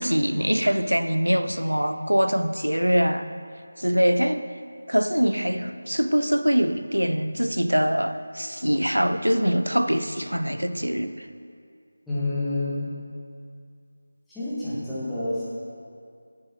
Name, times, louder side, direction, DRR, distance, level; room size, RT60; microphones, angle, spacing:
voice 1, 0.0-3.2 3.8-4.5 4.9-11.3, equal, 85° right, 10 dB, 0.5 m, -23 dB
voice 2, 12.1-12.9 14.3-15.4, left 2 dB, ahead, -13 dB, 1.3 m, -28 dB
7.9 x 7.0 x 4.4 m, 2.3 s
figure-of-eight pair, 165°, 0 cm